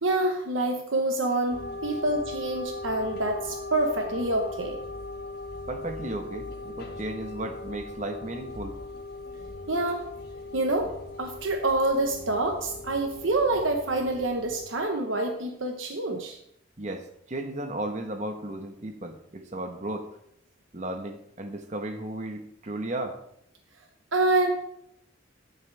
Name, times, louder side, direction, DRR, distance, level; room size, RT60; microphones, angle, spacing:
voice 1, 0.0-4.8 9.7-10.0 10.5-16.4 24.1-24.5, right 2 dB, 85° right, 4 dB, 1.2 m, -27 dB
sound 1, 1.5-14.7, left 2 dB, 50° left, 1.8 m, -39 dB
voice 2, 5.7-8.8 16.8-20.1 20.7-23.2, right 1 dB, 35° right, 6 dB, 1.3 m, -35 dB
13.0 x 10.5 x 3.4 m, 0.75 s
head